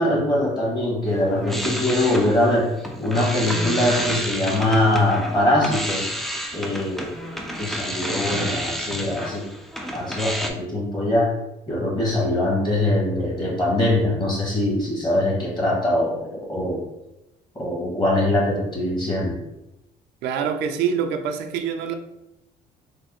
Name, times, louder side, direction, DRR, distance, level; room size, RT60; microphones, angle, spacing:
voice 1, 0.0-6.1 6.5-9.5 9.9-11.3 11.7-16.2 16.5-16.8 17.5-19.4, left 1 dB, 25° left, -3 dB, 1.4 m, -22 dB
sound 1, 1.1-10.5, equal, ahead, 0.4 m, -30 dB
voice 2, 20.2-21.9, right 7 dB, 85° right, 7 dB, 0.4 m, -25 dB
3.6 x 2.1 x 3.6 m, 0.90 s
cardioid pair, 110°, 17 cm